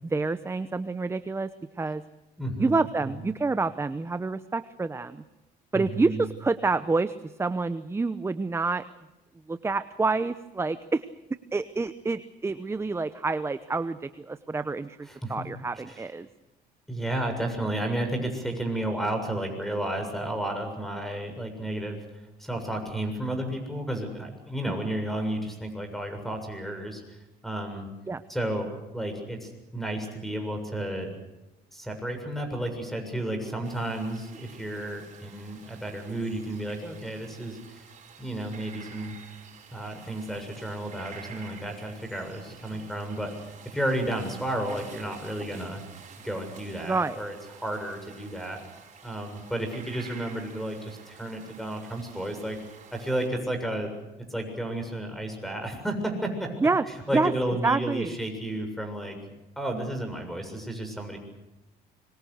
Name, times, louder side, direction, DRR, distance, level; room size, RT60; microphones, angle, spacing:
voice 1, 0.0-1.5 1.8-2.0 2.6-5.2 5.7-8.8 9.5-11.0 11.5-16.3 28.1-28.2 46.8-47.2 56.6-56.8 57.1-57.3 57.6-58.1, right 3 dB, 15° right, 12 dB, 0.8 m, -28 dB
voice 2, 2.4-2.8 3.0-3.1 5.7-6.3 15.1-15.4 15.9-16.0 16.9-22.0 22.4-27.2 27.4-27.9 28.3-31.1 31.7-37.8 38.2-39.1 39.7-43.3 43.7-45.8 46.2-48.6 49.0-52.6 52.9-53.9 54.3-56.5 57.1-59.2 59.6-61.2, right 1 dB, ahead, 6 dB, 7.1 m, -32 dB
sound 1, 33.6-53.3, right 6 dB, 45° right, 6.9 m, -49 dB
25.5 x 23.5 x 6.5 m, 1.1 s
cardioid pair, 110°, 17 cm